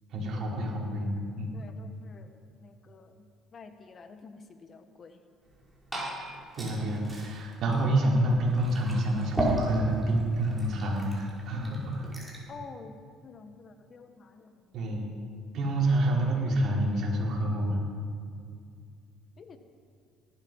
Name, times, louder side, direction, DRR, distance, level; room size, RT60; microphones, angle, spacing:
voice 1, 0.1-1.6 6.5-12.1 14.7-15.1 15.5-17.8, right 1 dB, 60° right, -3 dB, 4.5 m, -28 dB
voice 2, 1.5-2.4 2.6-5.2 12.5-14.6 19.4-19.6, left 4 dB, 40° left, 8 dB, 1.2 m, -49 dB
Liquid, 5.4-12.5, right 1 dB, 10° right, 5.1 m, -36 dB
18.5 x 12.5 x 5.5 m, 2.3 s
cardioid pair, 100°, 0 cm